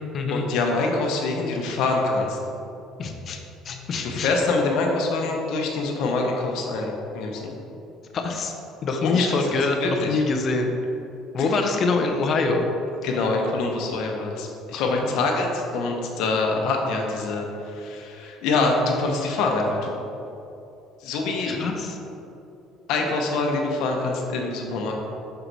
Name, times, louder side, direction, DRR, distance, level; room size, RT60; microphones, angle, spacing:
voice 1, 0.3-2.4 4.0-7.6 9.0-9.4 9.8-10.2 11.4-11.6 13.0-19.9 21.0-21.6 22.9-24.9, left 3 dB, 70° left, 1 dB, 0.9 m, -25 dB
voice 2, 3.0-3.4 3.6-4.3 8.1-8.5 8.8-10.7 11.3-12.7 14.7-15.2 21.5-22.0, left 3 dB, 40° left, 3 dB, 0.6 m, -25 dB
5.7 x 4.5 x 4.0 m, 2.8 s
cardioid pair, 140°, 0 cm